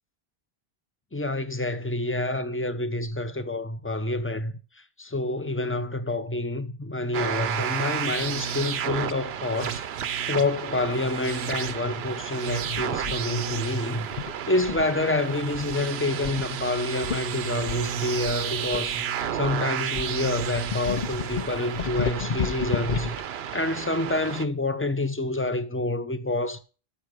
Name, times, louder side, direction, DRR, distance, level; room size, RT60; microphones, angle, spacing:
voice 1, 1.1-4.5 5.0-9.8 10.3-19.0 19.3-23.2 23.5-26.6, left 2 dB, 15° left, 0.7 m, -28 dB
sound 1, 7.1-24.5, right 8 dB, 75° right, 0.9 m, -32 dB
sound 2, 12.6-13.2 14.1-15.0 15.5-15.8 16.2-16.4 16.8-16.9 17.0-17.2 17.7-19.5 19.9-23.2, left 7 dB, 50° left, 0.7 m, -32 dB
13.0 x 5.9 x 5.0 m
omnidirectional pair, 1.1 m